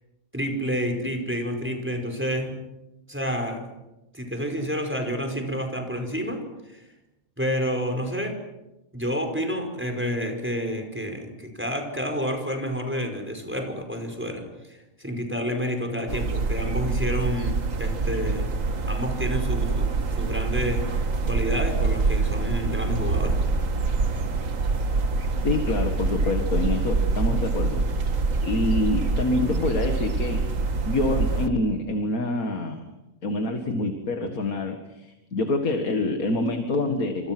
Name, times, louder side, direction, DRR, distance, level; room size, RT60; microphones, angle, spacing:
voice 1, 0.3-2.5 3.1-3.6 4.1-6.9 7.4-8.4 8.9-23.5, equal, 10° right, 4 dB, 5.2 m, -29 dB
sound 1, 16.1-31.5, right 3 dB, 70° right, 1.9 m, -25 dB
voice 2, 25.4-27.8 28.4-30.5 30.9-32.9 33.2-37.3, left 2 dB, 85° left, 5 dB, 2.4 m, -26 dB
28.0 x 27.5 x 6.2 m, 0.97 s
omnidirectional pair, 1.4 m